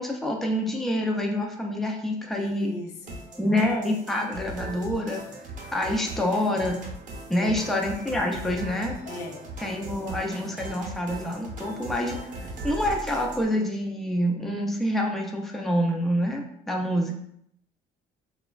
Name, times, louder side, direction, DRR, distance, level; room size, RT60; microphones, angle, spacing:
voice 1, 0.0-2.7 3.4-5.2 5.7-6.8 7.3-9.0 9.6-17.1, left 1 dB, ahead, 1 dB, 0.4 m, -27 dB
voice 2, 2.3-3.2 7.3-7.7 9.0-9.5, left 3 dB, 85° left, 2 dB, 0.6 m, -38 dB
sound 1, 3.0-13.5, right 2 dB, 50° right, 0.6 m, -39 dB
3.1 x 2.1 x 2.3 m, 0.73 s
cardioid pair, 110°, 17 cm